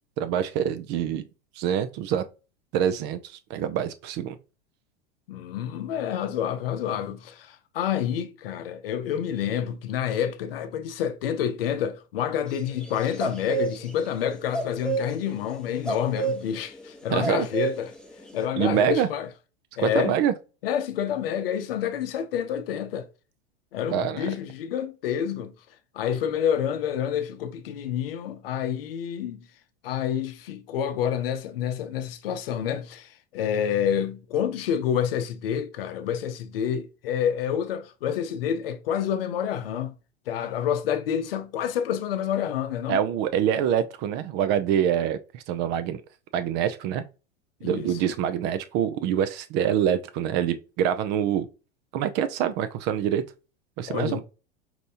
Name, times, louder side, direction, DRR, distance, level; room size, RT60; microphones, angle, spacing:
voice 1, 0.2-1.2 1.6-2.2 2.7-4.4 17.1-17.5 18.6-19.1 19.8-20.3 23.9-24.3 42.9-46.0 46.3-47.0 47.6-51.5 51.9-53.2 53.8-54.2, right 9 dB, 35° right, 0.4 m, -25 dB
voice 2, 5.3-17.9 18.3-19.3 19.8-20.2 20.6-23.1 23.7-25.5 25.9-29.4 29.8-39.9 40.3-43.0 47.6-47.9 53.9-54.2, left 9 dB, 65° left, 0.7 m, -28 dB
sound 1, 12.5-14.2 14.5-18.4, right 5 dB, ahead, 0.8 m, -29 dB
5.3 x 2.8 x 2.5 m
figure-of-eight pair, 90°, 32 cm